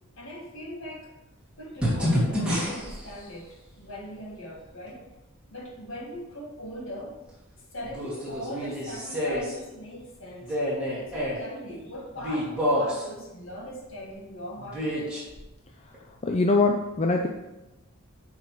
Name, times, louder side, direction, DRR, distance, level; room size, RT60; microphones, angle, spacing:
voice 1, 0.2-1.1 1.6-5.0 5.5-7.2 7.7-10.6 10.9-15.2, equal, 60° left, -3 dB, 1.9 m, -40 dB
sound 1, 1.8-3.1 4.9-5.0 7.8-9.5 10.4-11.4 12.2-13.0 14.6-15.4 15.9-16.0, equal, 5° right, 2.4 m, -28 dB
voice 2, 16.2-17.3, left 3 dB, 30° left, 2 dB, 0.4 m, -22 dB
9.3 x 5.7 x 3.2 m, 1.0 s
head